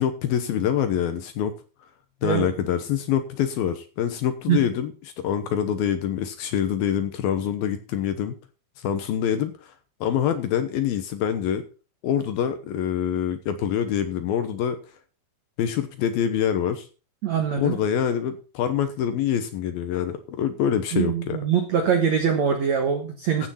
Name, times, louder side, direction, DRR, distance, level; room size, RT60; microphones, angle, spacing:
voice 1, 0.0-1.5 2.2-4.9 5.2-8.4 8.8-9.7 10.0-11.6 12.0-14.8 15.6-16.9 17.6-21.4 23.4-23.5, left 9 dB, 75° left, 9 dB, 2.3 m, -25 dB
voice 2, 2.2-2.5 4.5-4.6 17.2-17.8 20.9-23.5, right 7 dB, 85° right, 5 dB, 1.5 m, -23 dB
15.5 x 6.4 x 5.7 m, 0.36 s
omnidirectional pair, 5.5 m